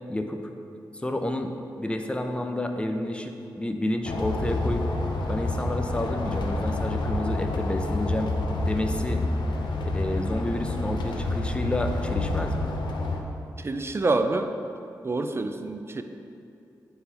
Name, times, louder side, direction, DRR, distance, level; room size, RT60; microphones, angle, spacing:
voice 1, 0.1-0.4 0.9-1.5 1.8-4.8 5.3-8.3 8.6-9.2 9.9-12.7, left 1 dB, 15° left, 5 dB, 0.6 m, -30 dB
sound 1, 4.0-13.2, left 2 dB, 80° left, 0.6 m, -28 dB
voice 2, 13.6-14.5 15.0-16.0, right 3 dB, 35° right, 7 dB, 0.4 m, -27 dB
9.3 x 3.9 x 2.9 m, 2.6 s
cardioid pair, 50°, 8 cm